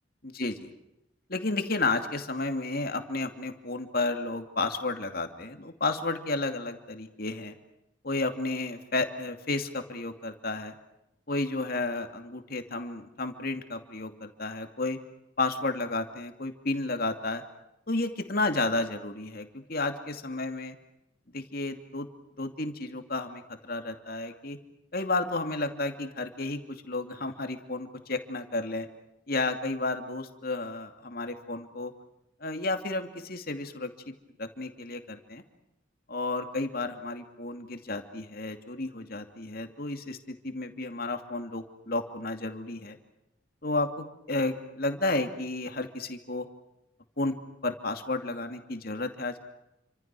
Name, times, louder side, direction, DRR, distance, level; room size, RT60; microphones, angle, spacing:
voice 1, 0.2-0.7 1.3-7.5 8.0-10.7 11.3-15.0 15.4-17.4 17.9-20.8 21.3-22.1 22.4-24.6 24.9-28.9 29.3-31.9 32.4-34.1 34.4-35.4 36.1-43.0 43.6-46.5 47.2-47.3 47.6-49.4, left 2 dB, 50° left, 6 dB, 2.7 m, -32 dB
29.0 x 26.0 x 6.3 m, 0.87 s
head